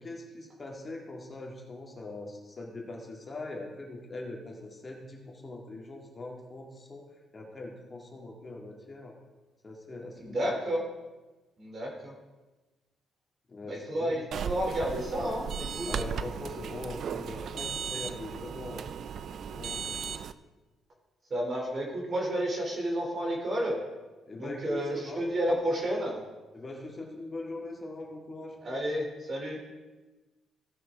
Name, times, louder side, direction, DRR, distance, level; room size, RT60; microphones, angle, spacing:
voice 1, 0.0-7.1 7.3-9.1 9.6-10.4 13.5-14.2 15.9-18.9 19.4-20.2 24.3-25.3 26.5-28.6, left 2 dB, 30° left, 0 dB, 2.0 m, -42 dB
voice 2, 10.2-10.8 11.6-12.1 13.6-16.1 21.3-23.8 24.4-26.2 28.6-29.6, equal, 45° right, -1 dB, 2.9 m, -31 dB
sound 1, 14.3-20.3, right 7 dB, 60° right, 0.4 m, -36 dB
16.0 x 6.0 x 3.6 m, 1.2 s
cardioid pair, 90°, 0 cm